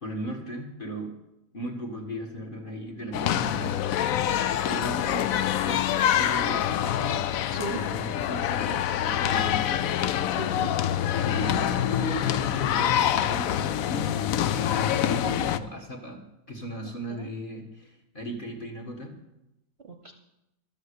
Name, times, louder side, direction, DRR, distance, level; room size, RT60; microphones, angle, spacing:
voice 1, 0.0-1.1 1.5-4.3 4.6-7.2 7.7-9.9 11.2-14.1 14.4-19.1, equal, 30° left, 2 dB, 1.7 m, -37 dB
sound 1, 3.1-15.6, left 10 dB, 75° left, 0.7 m, -26 dB
voice 2, 7.5-7.8 10.3-10.7 14.8-15.4 17.1-17.3 19.8-20.1, right 2 dB, 40° right, 3 dB, 1.0 m, -37 dB
13.0 x 7.2 x 8.3 m, 0.87 s
omnidirectional pair, 2.0 m